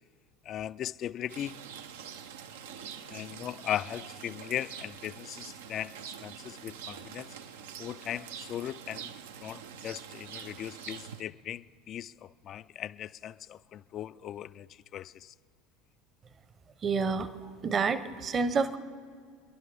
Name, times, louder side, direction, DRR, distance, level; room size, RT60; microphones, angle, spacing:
voice 1, 0.4-1.5 3.1-6.0 6.2-7.4 7.8-9.1 9.4-15.3, left 11 dB, 45° left, 0.4 m, -38 dB
Rain, 1.3-11.2, right 8 dB, 75° right, 0.6 m, -45 dB
voice 2, 16.8-18.8, right 5 dB, 35° right, 0.9 m, -29 dB
29.5 x 11.0 x 3.4 m
hypercardioid pair, 75°, 0 cm